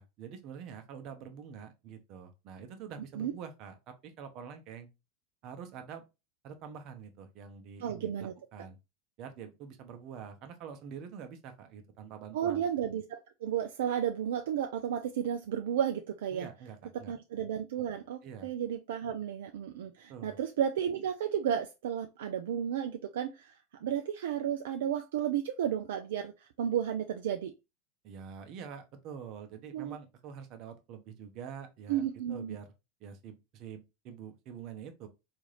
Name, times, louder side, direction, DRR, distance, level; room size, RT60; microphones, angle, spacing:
voice 1, 0.0-4.9 5.4-6.0 6.4-8.8 9.2-12.6 16.3-17.1 18.2-18.5 20.1-20.4 28.0-32.7 33.0-35.1, right 7 dB, 50° right, 0.7 m, -46 dB
voice 2, 7.8-8.3 12.3-16.5 17.1-27.5 29.7-30.0 31.9-32.6, right 9 dB, 70° right, 0.3 m, -33 dB
3.6 x 2.5 x 3.2 m
hypercardioid pair, 90°, 0 cm